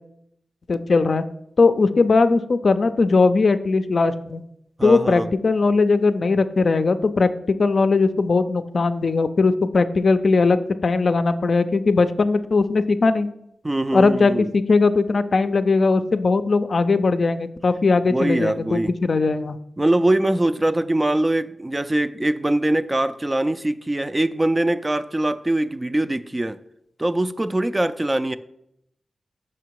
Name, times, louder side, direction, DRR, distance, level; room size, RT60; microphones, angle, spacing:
voice 1, 0.7-1.2 1.6-4.4 4.8-7.3 7.6-10.6 10.8-13.3 13.9-19.6, left 3 dB, 60° left, 0.4 m, -19 dB
voice 2, 4.8-5.3 13.6-14.5 18.1-18.9 19.8-26.6 27.0-28.4, right 1 dB, 20° right, 0.3 m, -22 dB
5.9 x 5.0 x 4.6 m
wide cardioid pair, 80°, 0 cm